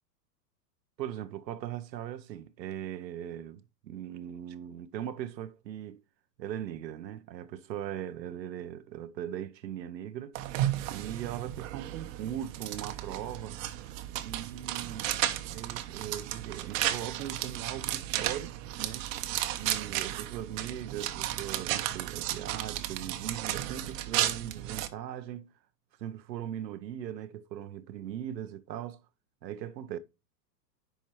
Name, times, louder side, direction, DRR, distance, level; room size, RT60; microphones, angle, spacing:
voice 1, 1.0-6.0 6.4-10.4 10.9-13.6 14.2-15.1 15.5-19.1 19.6-25.5 26.0-29.0 29.4-30.0, right 10 dB, 85° right, 0.8 m, -39 dB
sound 1, 10.4-24.9, right 13 dB, 50° right, 1.0 m, -34 dB
10.5 x 4.5 x 3.0 m
hypercardioid pair, 125°, 50 cm